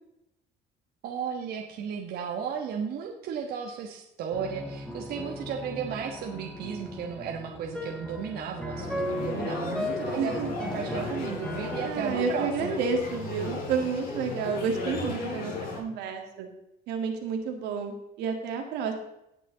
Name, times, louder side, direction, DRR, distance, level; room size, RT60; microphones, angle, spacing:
voice 1, 1.0-12.8, right 7 dB, 70° right, 2 dB, 1.3 m, -34 dB
sound 1, 4.3-11.9, equal, 5° left, 2.3 m, -37 dB
sound 2, 8.7-15.8, left 2 dB, 55° left, 4.8 m, -35 dB
voice 2, 10.1-10.5 11.8-16.5 16.9-18.9, right 5 dB, 90° right, 4 dB, 2.0 m, -30 dB
17.5 x 6.2 x 3.9 m, 0.85 s
cardioid pair, 110°, 17 cm